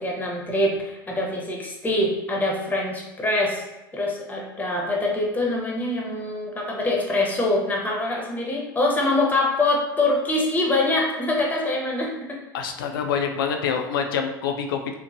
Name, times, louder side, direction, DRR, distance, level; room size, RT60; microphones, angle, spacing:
voice 1, 0.0-3.6 3.9-12.4, left 2 dB, 15° left, -2 dB, 0.7 m, -24 dB
voice 2, 12.5-15.0, left 6 dB, 70° left, 5 dB, 0.4 m, -26 dB
3.0 x 2.1 x 2.6 m, 1.0 s
figure-of-eight pair, 80°, 12 cm